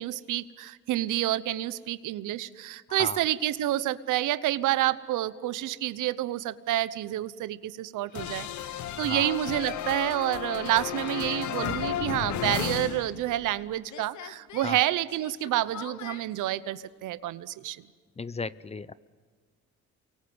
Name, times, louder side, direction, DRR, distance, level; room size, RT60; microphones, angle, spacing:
voice 1, 0.0-17.8, right 14 dB, 85° right, 16 dB, 0.9 m, -29 dB
voice 2, 2.9-3.2 9.0-9.3 14.6-14.8 18.2-18.9, left 4 dB, 20° left, 17 dB, 0.7 m, -35 dB
sound 1, 8.1-13.6 13.9-16.2, left 11 dB, 70° left, 1.1 m, -34 dB
28.5 x 23.5 x 7.9 m, 1.5 s
cardioid pair, 90°, 30 cm